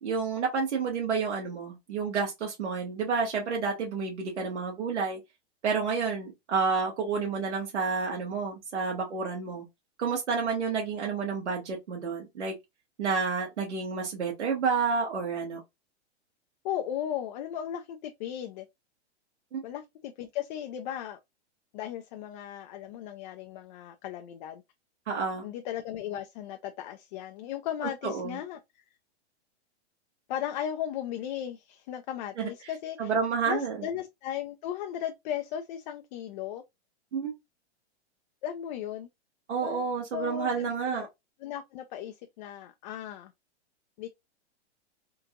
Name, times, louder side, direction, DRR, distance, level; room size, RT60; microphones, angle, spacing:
voice 1, 0.0-5.2 5.6-9.6 10.0-12.5 13.0-15.6 19.5-19.6 25.1-25.4 28.0-28.4 32.4-32.5 33.0-33.8 37.1-37.3 39.5-41.1, right 5 dB, 85° right, 1.4 m, -30 dB
voice 2, 16.6-18.7 19.6-21.2 21.7-24.6 25.4-28.6 30.3-33.1 33.5-36.6 38.4-39.1 39.6-39.8 40.1-41.1 41.4-43.3 44.0-44.1, left 10 dB, 40° left, 0.5 m, -36 dB
3.7 x 2.4 x 2.8 m
hypercardioid pair, 130°, 34 cm